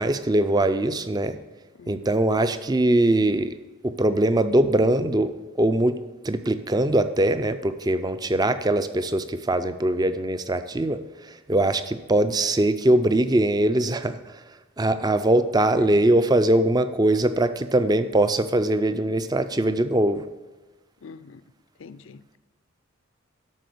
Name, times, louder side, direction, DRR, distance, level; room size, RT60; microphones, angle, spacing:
voice 1, 0.0-1.4 1.9-3.6 3.8-6.0 6.2-11.0 11.5-14.2 14.8-20.2, right 1 dB, 20° right, 11 dB, 0.4 m, -22 dB
voice 2, 1.7-2.1 15.8-16.0 21.0-21.4 21.8-22.4, left 5 dB, 65° left, 14 dB, 0.4 m, -43 dB
12.0 x 4.2 x 7.8 m, 1.2 s
head